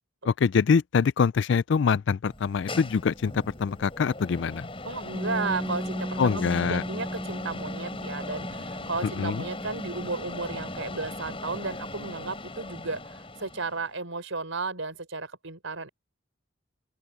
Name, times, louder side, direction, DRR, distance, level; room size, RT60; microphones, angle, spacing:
voice 1, 0.2-4.7 6.2-6.8 9.0-9.4, left 6 dB, 60° left, 0.4 m, -24 dB
sound 1, 2.3-13.9, left 2 dB, 25° left, 7.1 m, -39 dB
voice 2, 4.8-15.9, right 3 dB, 70° right, 4.5 m, -34 dB
Piano, 5.1-12.4, right 1 dB, 10° right, 2.5 m, -38 dB
open air
head